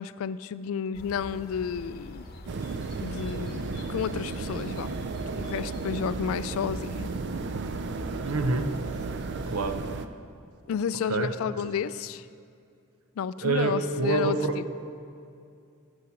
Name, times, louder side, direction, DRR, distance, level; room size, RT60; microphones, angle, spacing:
voice 1, 0.0-2.2 3.0-4.9 5.4-7.1 10.7-12.3 13.2-14.4, left 7 dB, 70° left, 17 dB, 0.3 m, -31 dB
sound 1, 0.9-9.7, left 1 dB, 45° left, 0.9 m, -45 dB
sound 2, 2.5-10.1, right 4 dB, 55° right, 0.4 m, -34 dB
voice 2, 8.2-8.7 9.5-9.8 11.1-11.6 13.4-14.7, right 3 dB, 85° right, 8 dB, 0.7 m, -27 dB
8.5 x 7.3 x 6.1 m, 2.5 s
head